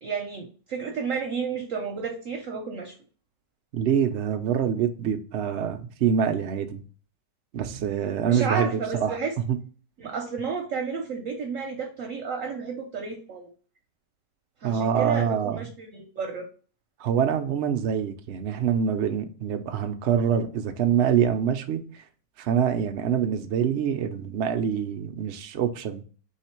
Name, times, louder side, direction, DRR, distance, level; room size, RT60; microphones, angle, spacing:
voice 1, 0.0-2.9 8.2-9.3 10.0-13.5 14.6-16.5, right 5 dB, 60° right, 0.9 m, -31 dB
voice 2, 3.7-6.8 7.5-9.2 9.5-9.6 14.6-15.7 17.0-22.0 22.4-26.0, right 8 dB, 80° right, 0.5 m, -25 dB
3.7 x 3.2 x 4.3 m
omnidirectional pair, 1.8 m